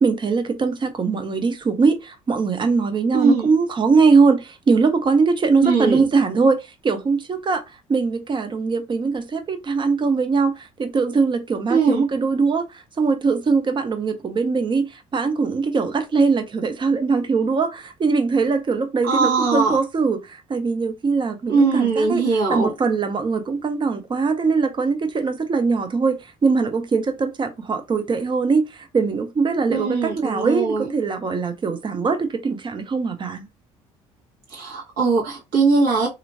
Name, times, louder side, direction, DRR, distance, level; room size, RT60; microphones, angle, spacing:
voice 1, 0.0-7.6 7.9-12.7 13.0-22.2 22.5-33.5, right 4 dB, 25° right, 0.7 m, -21 dB
voice 2, 3.1-3.5 5.6-6.1 11.7-12.0 19.0-19.8 21.5-22.7 29.7-30.9 34.5-36.1, right 4 dB, 55° right, 1.5 m, -20 dB
2.9 x 2.6 x 2.7 m
figure-of-eight pair, 50°, 18 cm